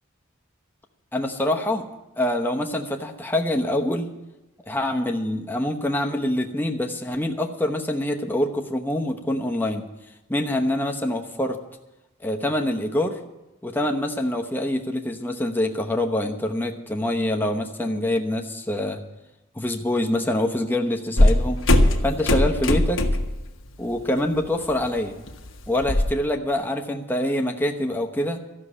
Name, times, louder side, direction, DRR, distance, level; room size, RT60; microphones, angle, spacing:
voice 1, 1.1-1.8 2.2-4.1 4.7-9.9 10.3-11.6 12.2-13.2 13.6-19.0 19.5-21.6 22.0-23.0 23.8-25.2 25.7-28.4, left 1 dB, 10° left, 2 dB, 0.9 m, -25 dB
sound 1, 21.2-23.4 23.8-24.1 24.4-26.1, left 1 dB, 70° left, 1.2 m, -20 dB
13.5 x 6.6 x 9.8 m, 1.0 s
head